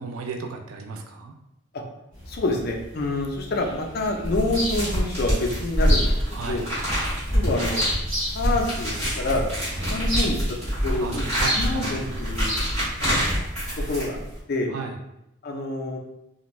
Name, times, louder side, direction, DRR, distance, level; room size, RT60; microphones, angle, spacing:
voice 1, 0.0-1.3 6.3-6.6 11.0-12.2 14.7-15.0, right 4 dB, 80° right, 3 dB, 0.4 m, -34 dB
sound 1, 2.1-13.7, left 1 dB, 55° right, 1.2 m, -34 dB
voice 2, 2.3-6.1 6.5-6.6 7.3-7.8 8.3-9.4 9.9-10.4 10.8-11.3 11.5-12.5 13.0-13.2 13.9-14.2 14.5-14.7 15.4-16.0, left 2 dB, 45° left, 1 dB, 0.4 m, -27 dB
sound 2, 4.2-14.4, equal, 30° right, 1.3 m, -26 dB
2.5 x 2.2 x 3.0 m, 0.85 s
head